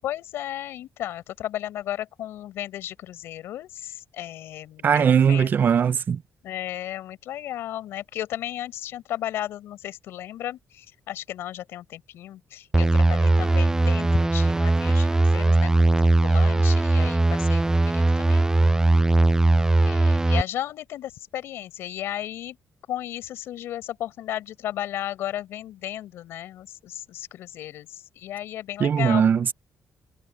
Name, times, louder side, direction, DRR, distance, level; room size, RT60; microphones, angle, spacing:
voice 1, 0.0-5.6 6.4-15.9 16.2-18.5 19.8-22.6 22.9-29.2, left 12 dB, 85° left, 5.6 m, -34 dB
voice 2, 4.8-6.2 28.8-29.5, right 7 dB, 55° right, 0.8 m, -20 dB
sound 1, 12.7-20.4, right 2 dB, 15° right, 0.5 m, -19 dB
cardioid pair, 75°, 4 cm